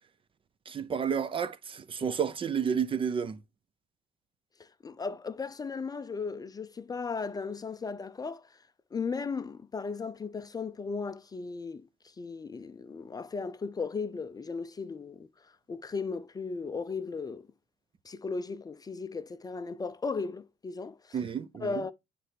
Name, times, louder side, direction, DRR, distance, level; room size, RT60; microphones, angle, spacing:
voice 1, 0.7-3.4 21.1-21.7, right 7 dB, 30° right, 0.5 m, -31 dB
voice 2, 4.6-8.6 8.9-11.9 12.2-15.3 15.7-17.5 18.0-21.2 21.6-21.9, left 4 dB, 20° left, 0.4 m, -36 dB
9.8 x 3.3 x 3.2 m
cardioid pair, 110°, 17 cm